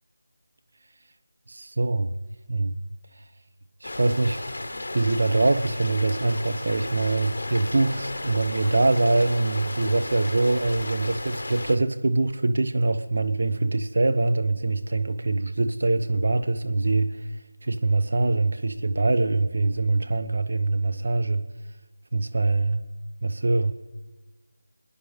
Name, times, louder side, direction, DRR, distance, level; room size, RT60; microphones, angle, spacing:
voice 1, 1.5-2.2 2.5-2.8 3.8-4.4 4.9-17.3 17.6-21.4 22.1-22.8 23.2-23.7, right 2 dB, 55° right, 8 dB, 1.0 m, -23 dB
Rain, 3.8-11.8, left 2 dB, 55° left, 1.0 m, -34 dB
29.5 x 10.0 x 3.3 m, 1.3 s
figure-of-eight pair, 165°, 0 cm